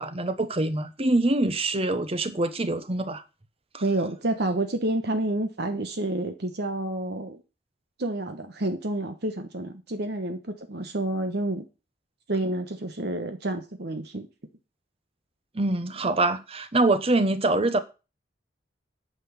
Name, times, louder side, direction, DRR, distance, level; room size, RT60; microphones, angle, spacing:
voice 1, 0.0-3.2 3.7-3.8 15.5-17.8, right 2 dB, 35° right, 1.0 m, -24 dB
voice 2, 3.8-7.4 8.0-11.6 12.3-14.3, right 1 dB, 65° right, 1.2 m, -29 dB
9.4 x 5.9 x 7.3 m
head